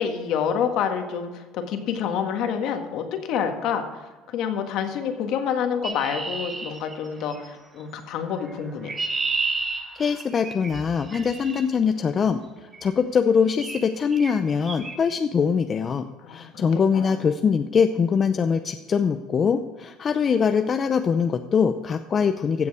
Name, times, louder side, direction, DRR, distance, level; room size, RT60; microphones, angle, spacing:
voice 1, 0.0-3.9 4.3-8.9 16.2-17.2, left 7 dB, 65° left, 5 dB, 1.6 m, -28 dB
Chirp tweet, 5.8-7.5 8.5-11.6 12.7-13.0 13.6-13.9 14.1-14.3 14.7-15.0, right 3 dB, 25° right, 1.4 m, -31 dB
voice 2, 9.9-12.4 12.8-22.7, left 6 dB, 35° left, 8 dB, 0.6 m, -23 dB
15.0 x 7.1 x 4.9 m, 1.3 s
cardioid pair, 120°, 0 cm